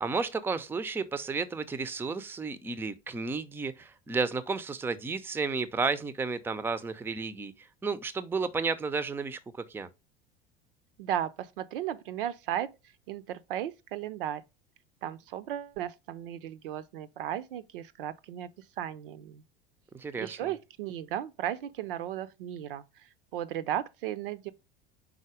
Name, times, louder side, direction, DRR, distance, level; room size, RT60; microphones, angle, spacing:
voice 1, 0.0-9.9 19.9-20.5, right 4 dB, 5° right, 0.5 m, -32 dB
voice 2, 11.0-12.7 13.1-14.4 15.0-18.5 18.8-19.4 20.2-24.5, right 11 dB, 65° right, 0.6 m, -35 dB
4.9 x 3.9 x 4.8 m
figure-of-eight pair, 75°, 30 cm